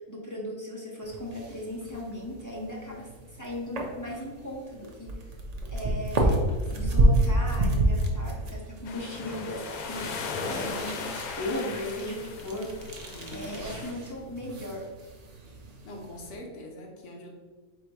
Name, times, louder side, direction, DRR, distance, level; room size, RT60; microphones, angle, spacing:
voice 1, 0.0-3.1 3.4-5.1 5.7-6.4 6.7-11.1 11.4-13.0 13.3-14.9, left 1 dB, 20° left, -4 dB, 0.5 m, -37 dB
sound 1, 1.0-16.3, right 1 dB, 60° right, 0.4 m, -30 dB
sound 2, 8.9-13.9, left 4 dB, 85° left, 1.1 m, -37 dB
voice 2, 13.1-13.7 15.8-17.3, left 1 dB, 60° left, 0 dB, 1.1 m, -43 dB
3.8 x 2.8 x 4.6 m, 1.3 s
omnidirectional pair, 1.5 m